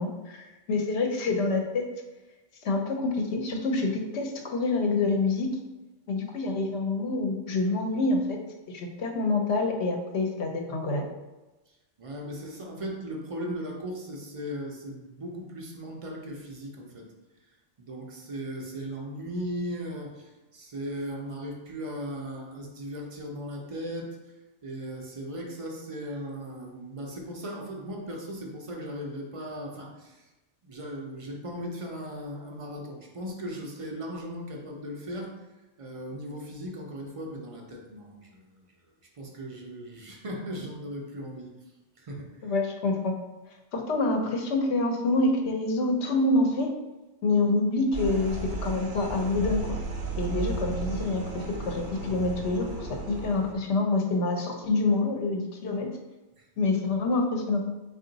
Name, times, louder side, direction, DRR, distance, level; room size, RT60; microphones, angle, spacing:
voice 1, 0.0-1.8 2.6-5.5 6.1-8.4 8.7-11.0 42.4-43.1 43.7-46.7 47.2-49.8 50.2-55.9 56.6-57.6, left 2 dB, 70° left, 2 dB, 0.9 m, -27 dB
voice 2, 11.7-17.1 17.8-24.1 24.6-30.3 30.6-35.3 35.8-38.6 39.1-41.5 42.0-42.5 56.4-56.5, equal, 45° right, 0 dB, 0.4 m, -37 dB
sound 1, 47.9-53.5, right 4 dB, 65° right, 0.8 m, -34 dB
3.7 x 2.4 x 3.8 m, 1.1 s
omnidirectional pair, 1.2 m